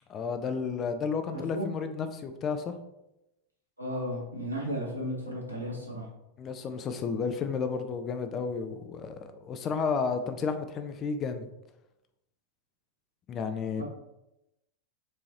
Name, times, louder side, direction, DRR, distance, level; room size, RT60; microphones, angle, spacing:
voice 1, 0.1-2.7 6.4-9.1 9.4-11.5 13.3-13.8, left 5 dB, 30° left, 7 dB, 0.4 m, -32 dB
voice 2, 1.3-1.6 3.8-6.0 13.8-13.9, equal, 85° right, -3 dB, 1.1 m, -34 dB
4.6 x 2.9 x 2.9 m, 0.89 s
figure-of-eight pair, 90°, 0 cm